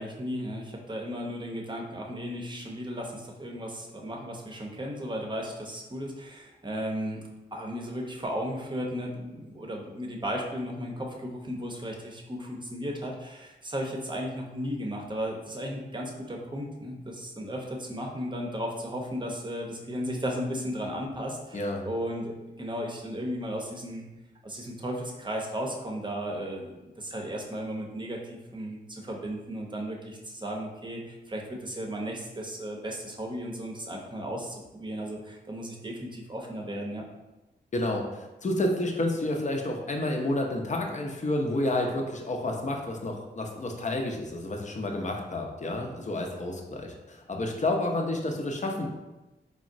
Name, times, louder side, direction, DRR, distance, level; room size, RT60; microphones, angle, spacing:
voice 1, 0.0-7.2 7.5-24.0 24.4-37.0, equal, 25° right, 0 dB, 0.7 m, -35 dB
voice 2, 21.5-21.9 37.7-48.9, left 1 dB, 40° left, 2 dB, 0.6 m, -30 dB
3.5 x 2.0 x 2.6 m, 1.0 s
supercardioid pair, 40°, 19 cm